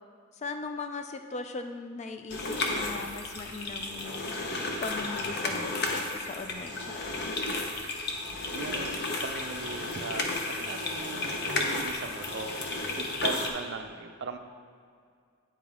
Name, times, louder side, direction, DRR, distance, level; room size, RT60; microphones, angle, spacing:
voice 1, 0.4-7.3, left 3 dB, 30° left, 6 dB, 0.3 m, -39 dB
sound 1, 2.3-13.5, left 2 dB, 50° left, 0.7 m, -33 dB
voice 2, 8.5-12.6 13.0-14.4, right 4 dB, 55° right, 7 dB, 0.4 m, -39 dB
8.8 x 5.0 x 3.6 m, 2.2 s
head